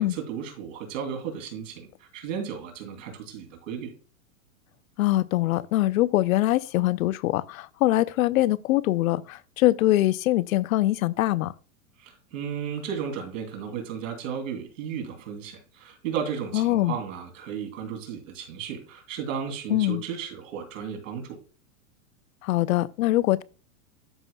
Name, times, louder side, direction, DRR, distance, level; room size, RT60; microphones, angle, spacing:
voice 1, 0.0-3.9 12.0-21.4, right 7 dB, 60° right, 3.0 m, -34 dB
voice 2, 5.0-11.5 16.5-17.0 19.7-20.0 22.4-23.4, left 15 dB, 70° left, 0.6 m, -23 dB
12.5 x 5.6 x 2.2 m
supercardioid pair, 160°, 43 cm